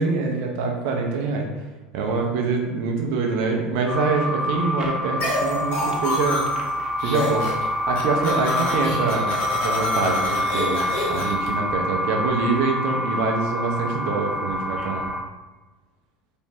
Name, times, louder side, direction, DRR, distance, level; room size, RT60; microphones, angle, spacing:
voice 1, 0.0-1.5 1.9-6.4 7.0-15.1, right 4 dB, 60° right, 1 dB, 0.5 m, -25 dB
sound 1, 3.9-15.2, left 1 dB, 20° right, 0.6 m, -27 dB
sound 2, 5.2-6.7 7.0-7.7 7.9-11.5, left 2 dB, 60° left, 0.8 m, -28 dB
2.6 x 2.0 x 3.2 m, 1.2 s
hypercardioid pair, 75°, 4 cm